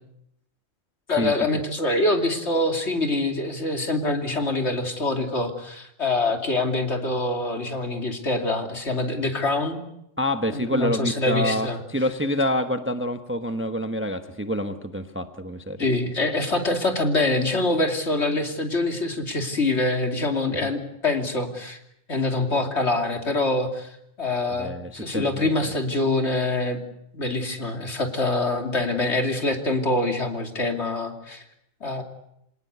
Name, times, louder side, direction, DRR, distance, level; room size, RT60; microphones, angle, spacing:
voice 1, 1.1-9.8 10.5-11.8 15.8-21.8 22.1-26.8 27.1-31.4 31.8-32.0, left 2 dB, 55° left, 4 dB, 3.1 m, -25 dB
voice 2, 10.2-15.8 20.5-20.7 24.6-25.7, equal, 10° right, 7 dB, 1.0 m, -27 dB
27.0 x 18.5 x 8.2 m, 0.79 s
omnidirectional pair, 1.3 m